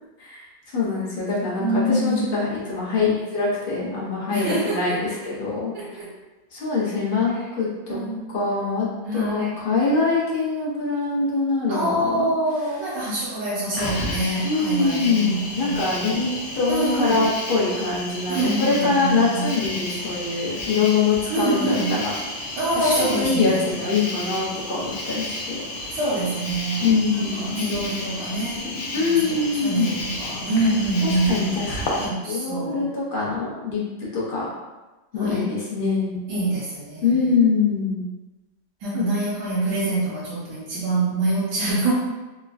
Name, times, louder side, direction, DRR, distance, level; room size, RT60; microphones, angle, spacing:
voice 1, 0.7-6.0 6.5-8.0 8.3-12.3 14.4-16.3 16.5-22.1 22.8-25.6 26.8-27.6 28.9-29.9 31.0-34.5 35.1-36.2 37.0-38.0 38.9-39.1, left 4 dB, 55° left, -6 dB, 0.6 m, -24 dB
voice 2, 1.6-2.3 4.3-4.9 5.7-6.1 7.9-8.3 9.0-9.6 11.7-16.2 16.7-17.2 18.3-19.5 21.3-22.0 22.6-23.8 25.9-28.7 28.9-31.6 32.0-32.9 35.1-35.4 36.3-37.2 38.8-41.9, right 2 dB, 85° right, -7 dB, 1.3 m, -25 dB
Cricket, 13.7-32.1, left 2 dB, 85° left, 1.2 m, -32 dB
3.5 x 2.1 x 2.3 m, 1.1 s
omnidirectional pair, 1.8 m